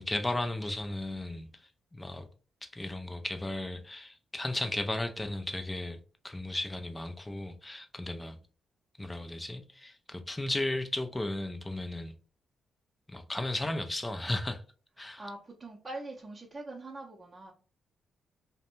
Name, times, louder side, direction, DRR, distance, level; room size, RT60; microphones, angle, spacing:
voice 1, 0.0-1.5 1.9-2.2 2.6-6.0 6.2-8.4 9.0-12.1 13.1-14.6 15.0-15.2, left 1 dB, 15° left, 0.4 m, -35 dB
voice 2, 15.2-17.5, right 2 dB, 30° right, 0.6 m, -43 dB
2.5 x 2.1 x 2.9 m
cardioid pair, 70°, 0 cm